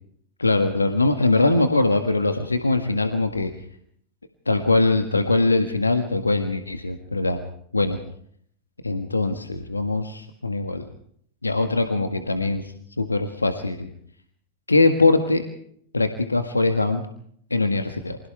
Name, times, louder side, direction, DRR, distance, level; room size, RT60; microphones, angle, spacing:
voice 1, 0.4-3.5 4.5-7.4 7.7-8.0 8.8-10.9 11.4-13.9 14.7-15.4 15.9-17.0 17.5-18.2, left 2 dB, 80° left, 7 dB, 1.8 m, -22 dB
29.5 x 25.5 x 3.5 m, 0.63 s
figure-of-eight pair, 90°, 0 cm